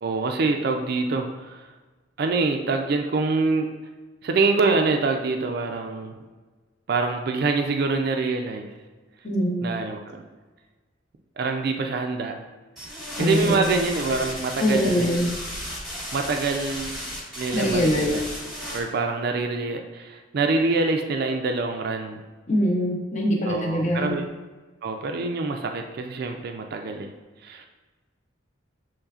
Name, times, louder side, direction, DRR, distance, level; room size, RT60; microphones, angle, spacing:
voice 1, 0.0-1.7 2.2-3.7 4.2-6.2 6.9-8.7 9.6-10.3 11.4-12.4 12.8-15.2 16.1-17.0 17.4-18.2 18.7-22.2 23.4-24.3 24.8-27.1 27.4-27.7, right 3 dB, 50° right, 4 dB, 0.4 m, -25 dB
voice 2, 9.2-9.8 13.2-13.6 14.6-15.3 17.5-18.1 22.5-24.2, equal, 35° left, -1 dB, 0.7 m, -23 dB
sound 1, 12.8-18.8, equal, ahead, 1.2 m, -34 dB
6.8 x 3.1 x 2.4 m, 1.3 s
head